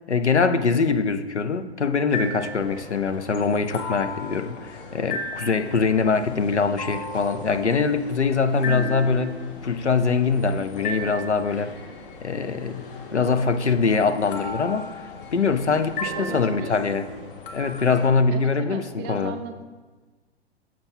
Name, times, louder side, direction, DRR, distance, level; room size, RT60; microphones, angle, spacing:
voice 1, 0.1-11.7 12.2-12.9 13.1-14.9 15.3-17.1 17.5-19.3, left 5 dB, 90° left, 10 dB, 0.6 m, -23 dB
sound 1, 2.1-18.1, left 3 dB, 55° left, 1.1 m, -36 dB
voice 2, 8.6-9.0 16.0-17.0 18.3-19.6, right 6 dB, 25° right, 6 dB, 0.4 m, -37 dB
7.5 x 5.9 x 4.6 m, 1.3 s
figure-of-eight pair, 105°, 33 cm